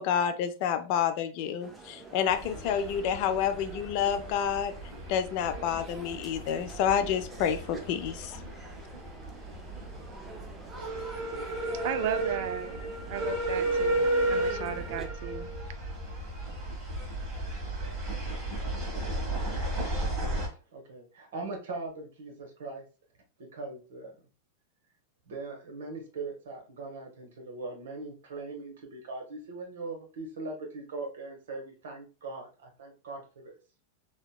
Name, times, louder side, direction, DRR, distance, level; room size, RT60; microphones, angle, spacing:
voice 1, 0.0-4.7 5.1-8.4, left 8 dB, 55° left, 0.4 m, -29 dB
sound 1, 1.6-15.1, right 2 dB, 15° right, 0.5 m, -47 dB
sound 2, 2.3-20.5, right 1 dB, 30° right, 1.4 m, -33 dB
voice 2, 11.8-12.7 13.1-15.5, right 9 dB, 65° right, 0.3 m, -35 dB
voice 3, 20.7-22.8 23.4-24.1 25.3-33.5, right 3 dB, 80° right, 1.0 m, -40 dB
2.8 x 2.1 x 2.2 m
hypercardioid pair, 125°, 0 cm